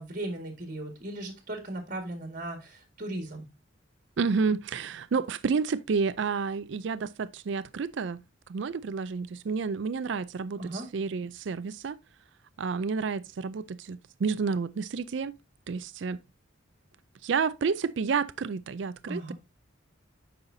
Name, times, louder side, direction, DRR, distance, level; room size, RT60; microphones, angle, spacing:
voice 1, 0.0-3.5 10.6-10.9 19.1-19.3, right 1 dB, 40° right, 1.7 m, -37 dB
voice 2, 4.2-8.2 8.5-12.0 12.6-15.3 15.7-16.2 17.2-19.3, right 5 dB, 65° right, 0.4 m, -30 dB
8.8 x 5.6 x 2.6 m
head